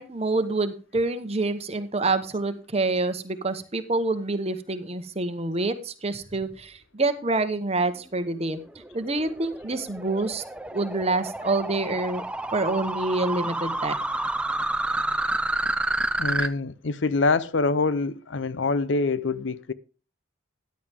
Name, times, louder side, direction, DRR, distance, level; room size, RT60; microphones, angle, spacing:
voice 1, 0.0-8.6 8.9-10.4 10.7-12.2 12.5-13.9, right 2 dB, 30° right, 1.1 m, -27 dB
sound 1, 8.4-16.5, right 2 dB, 5° right, 0.5 m, -29 dB
voice 2, 16.2-19.7, left 3 dB, 65° left, 0.6 m, -25 dB
13.5 x 10.5 x 3.6 m
head